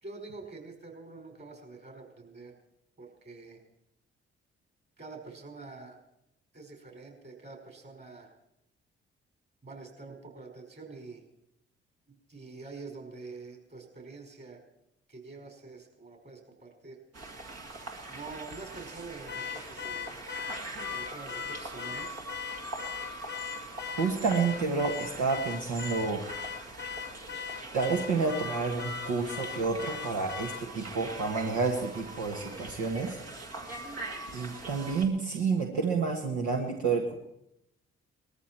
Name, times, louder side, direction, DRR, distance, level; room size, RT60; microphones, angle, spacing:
voice 1, 0.0-2.5 3.0-3.6 5.0-6.0 6.5-8.3 9.6-11.2 12.1-14.6 15.1-17.0 18.1-20.3 20.8-22.2, right 3 dB, 35° right, 2 dB, 5.3 m, -46 dB
sound 1, 17.1-35.0, right 2 dB, 60° right, 2.1 m, -42 dB
Car / Alarm, 19.3-30.7, left 8 dB, 35° left, 0.7 m, -39 dB
voice 2, 24.0-26.2 27.7-33.2 34.3-37.1, right 4 dB, 75° right, 0 dB, 1.5 m, -29 dB
19.5 x 14.0 x 4.5 m, 0.82 s
hypercardioid pair, 40°, 29 cm